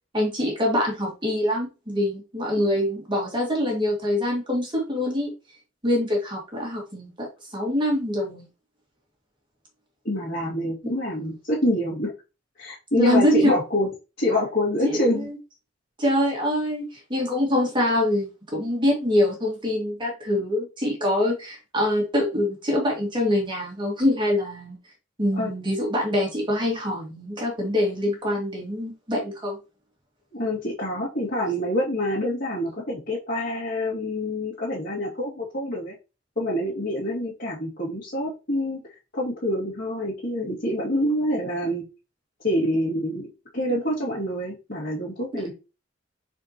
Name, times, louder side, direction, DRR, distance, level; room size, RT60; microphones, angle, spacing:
voice 1, 0.1-5.3 5.8-7.3 7.5-8.5 10.8-10.9 13.0-13.6 14.8-15.4 16.0-24.8 25.2-29.6 45.3-45.4, left 1 dB, 25° right, -1 dB, 2.3 m, -24 dB
voice 2, 10.0-12.1 12.6-13.9 14.2-15.3 25.4-25.5 30.3-35.9 36.4-38.8 39.1-41.9 42.4-43.3 43.5-45.5, left 1 dB, 50° left, -6 dB, 2.3 m, -26 dB
7.5 x 4.5 x 3.0 m, 0.29 s
head